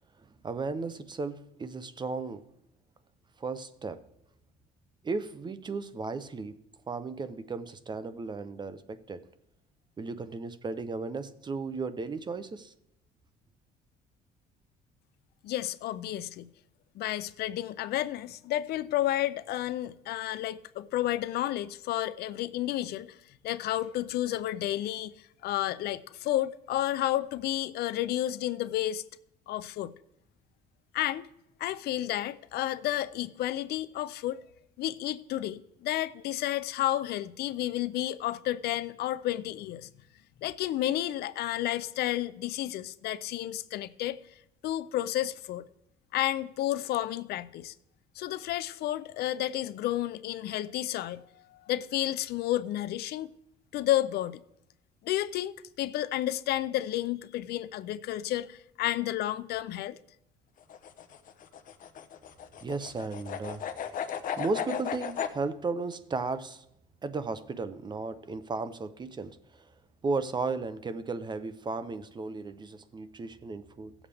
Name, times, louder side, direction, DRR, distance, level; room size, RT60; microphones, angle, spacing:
voice 1, 0.4-2.4 3.4-4.1 5.0-6.6 6.9-9.2 10.0-12.7 62.6-63.7 64.4-66.6 67.0-69.6 70.0-73.9, right 4 dB, 25° right, 0.7 m, -35 dB
voice 2, 15.4-16.5 16.9-23.2 23.4-29.0 29.5-29.9 30.9-31.3 31.6-34.4 34.8-39.9 40.4-44.2 44.6-45.7 46.1-47.7 48.2-53.3 53.7-54.4 55.0-60.0, left 13 dB, 70° left, 0.5 m, -31 dB
sound 1, 60.6-65.4, left 8 dB, 55° left, 0.9 m, -36 dB
17.5 x 7.2 x 3.5 m
cardioid pair, 110°, 17 cm